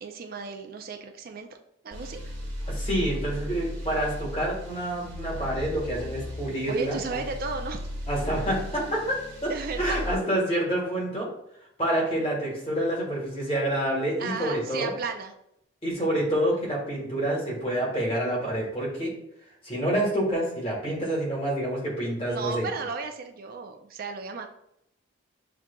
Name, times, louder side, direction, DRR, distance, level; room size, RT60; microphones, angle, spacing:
voice 1, 0.0-1.5 1.8-2.2 6.7-7.8 9.5-10.0 14.2-15.3 22.3-24.5, right 4 dB, 45° right, 5 dB, 0.4 m, -34 dB
sound 1, 1.9-10.2, equal, 70° right, 1.4 m, -36 dB
voice 2, 2.7-7.2 8.1-9.5 9.8-11.3 11.8-14.9 15.8-19.1 19.6-22.7, right 1 dB, 30° left, -4 dB, 1.4 m, -28 dB
7.2 x 2.5 x 2.2 m, 0.77 s
head